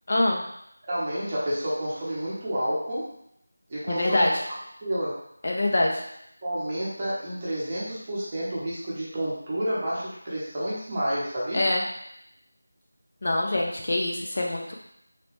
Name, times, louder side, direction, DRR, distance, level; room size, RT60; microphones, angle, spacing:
voice 1, 0.1-0.4 3.9-4.3 5.4-6.0 11.5-11.8 13.2-14.7, left 1 dB, 40° left, -1 dB, 0.4 m, -24 dB
voice 2, 0.9-3.1 3.7-4.3 4.8-5.2 6.4-11.6, right 1 dB, 20° right, -8 dB, 0.7 m, -29 dB
3.1 x 2.9 x 2.9 m, 0.77 s
figure-of-eight pair, 180°, 0 cm